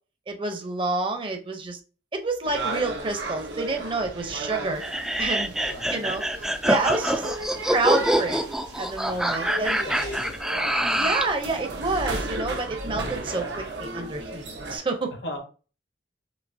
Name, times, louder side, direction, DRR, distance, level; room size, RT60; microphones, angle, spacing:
voice 1, 0.3-1.8 2.1-7.3 7.7-8.4 8.8-9.8 10.9-14.4 14.7-15.1, right 3 dB, 30° right, 0.7 m, -29 dB
sound 1, 2.4-14.8, right 2 dB, 80° right, 1.0 m, -35 dB
sound 2, 4.8-11.4, right 1 dB, 5° right, 0.3 m, -25 dB
voice 2, 5.6-5.9 9.0-10.4 15.1-15.4, left 1 dB, 75° left, 1.1 m, -38 dB
6.2 x 2.9 x 2.7 m
head